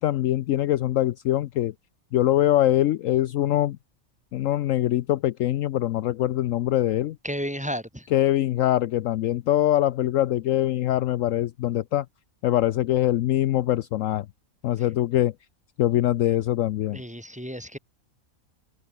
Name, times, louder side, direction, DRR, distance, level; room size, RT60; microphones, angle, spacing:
voice 1, 0.0-1.7 2.1-3.8 4.3-7.2 8.1-12.1 12.4-14.3 14.6-15.3 15.8-17.0, left 13 dB, 70° left, 0.9 m, -23 dB
voice 2, 7.2-8.1 16.9-17.8, equal, 5° right, 2.6 m, -32 dB
open air
omnidirectional pair, 1.5 m